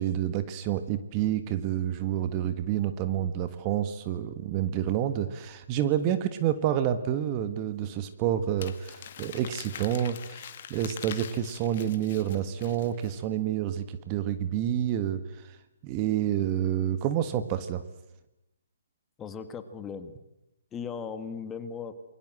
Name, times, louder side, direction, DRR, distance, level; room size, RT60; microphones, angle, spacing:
voice 1, 0.0-15.6 15.8-17.8, right 10 dB, 30° right, 11 dB, 1.6 m, -29 dB
Crumpling crinkling, 8.6-13.2, left 9 dB, 45° left, 2.1 m, -44 dB
voice 2, 19.2-20.1 20.7-21.9, left 6 dB, 15° left, 10 dB, 1.9 m, -37 dB
28.0 x 22.5 x 7.7 m, 0.88 s
figure-of-eight pair, 140°, 0 cm